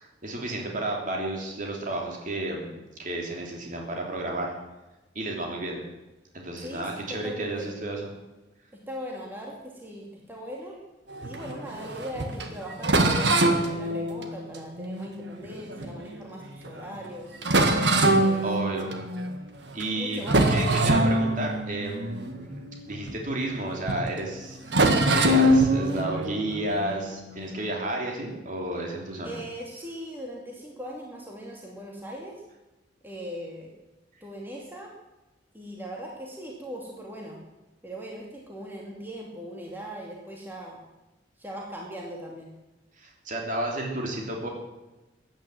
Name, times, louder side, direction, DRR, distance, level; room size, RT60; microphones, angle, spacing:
voice 1, 0.0-2.7 3.0-4.5 5.1-5.8 6.3-8.1 15.7-15.9 18.4-18.9 19.7-29.4 43.0-44.5, right 1 dB, 45° right, 0 dB, 3.2 m, -32 dB
voice 2, 6.6-7.7 8.7-10.8 11.2-17.4 18.1-18.4 20.0-20.9 29.2-32.3 33.0-33.7 34.2-34.9 35.5-37.4 37.8-40.8 41.4-42.5, equal, 10° right, -2 dB, 2.5 m, -39 dB
sound 1, 11.1-16.1 16.6-16.8 17.0-17.1 17.4-19.3 19.7-20.0 20.2-23.6 23.9-24.0 24.7-27.7, right 1 dB, 70° right, 1.8 m, -24 dB
15.0 x 10.5 x 7.8 m, 1.1 s
head